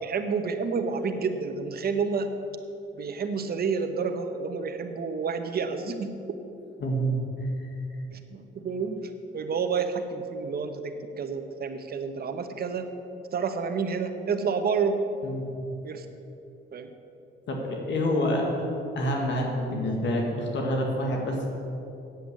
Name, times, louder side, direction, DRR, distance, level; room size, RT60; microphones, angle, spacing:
voice 1, 0.0-2.4 2.9-6.4 8.1-12.9 13.3-15.0 15.8-16.1 16.7-16.9, right 5 dB, 50° right, 7 dB, 1.1 m, -29 dB
voice 2, 6.8-7.5 15.2-15.5 17.5-18.4 19.0-21.5, equal, 65° left, 0 dB, 1.9 m, -27 dB
8.3 x 7.9 x 8.3 m, 2.8 s
cardioid pair, 90°, 20 cm